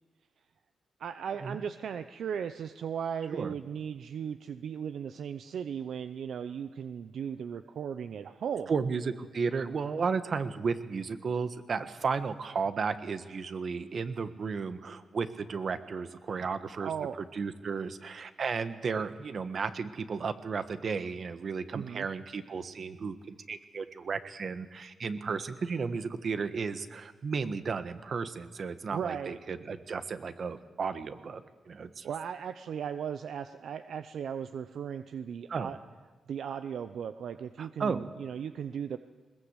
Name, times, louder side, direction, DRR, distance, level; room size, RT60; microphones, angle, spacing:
voice 1, 1.0-8.7 16.3-16.5 16.8-17.2 21.7-22.1 28.9-29.4 32.0-35.8 36.3-39.0, right 8 dB, 75° right, 10 dB, 0.7 m, -37 dB
voice 2, 8.7-16.9 17.3-31.4 31.7-32.1 35.5-35.7 37.6-38.0, right 5 dB, 55° right, 11 dB, 1.4 m, -34 dB
20.5 x 20.5 x 8.2 m, 1.4 s
cardioid pair, 70°, 0 cm